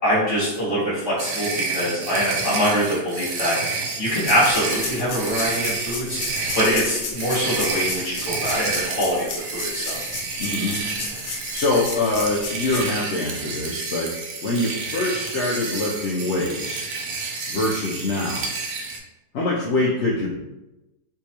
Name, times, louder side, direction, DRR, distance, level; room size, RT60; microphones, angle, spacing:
voice 1, 0.0-6.2 6.5-10.0, equal, 20° left, -9 dB, 1.5 m, -24 dB
sound 1, 1.2-19.0, right 4 dB, 85° right, 1.2 m, -30 dB
sound 2, 4.2-12.8, left 4 dB, 80° left, 1.2 m, -33 dB
voice 2, 10.4-10.8 11.5-14.1 14.4-16.8 17.5-18.5 19.3-20.4, left 2 dB, 65° left, -4 dB, 0.7 m, -24 dB
3.5 x 3.0 x 2.8 m, 1.0 s
omnidirectional pair, 1.7 m